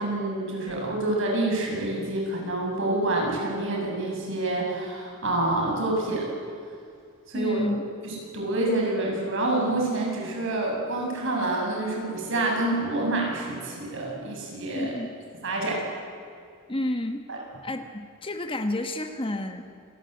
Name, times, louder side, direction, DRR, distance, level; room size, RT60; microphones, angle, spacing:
voice 1, 0.0-6.3 7.3-7.6 8.0-14.9 15.4-15.8 17.3-17.4, right 2 dB, 65° right, -1 dB, 7.5 m, -27 dB
voice 2, 7.3-7.8 14.7-15.1 16.7-17.2 17.6-19.6, left 1 dB, 25° left, 7 dB, 1.4 m, -30 dB
28.0 x 20.5 x 8.0 m, 2.3 s
head